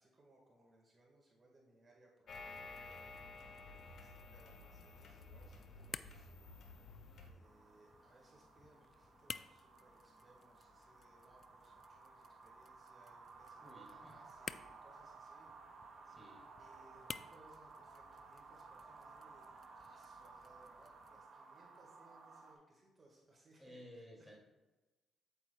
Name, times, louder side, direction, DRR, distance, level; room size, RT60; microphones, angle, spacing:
voice 1, 0.0-6.5 6.8-15.5 16.6-24.3, right 2 dB, 35° right, -1 dB, 1.6 m, -67 dB
sound 1, 2.3-7.3, left 3 dB, 60° left, 1.4 m, -53 dB
sound 2, 2.3-21.2, left 5 dB, 40° left, 0.3 m, -56 dB
sound 3, 7.4-22.5, right 4 dB, 55° right, 1.3 m, -57 dB
voice 2, 13.6-14.1 16.0-16.5 23.6-24.4, equal, 5° left, -1 dB, 2.4 m, -56 dB
8.7 x 8.2 x 2.3 m, 1.1 s
cardioid pair, 90°, 0 cm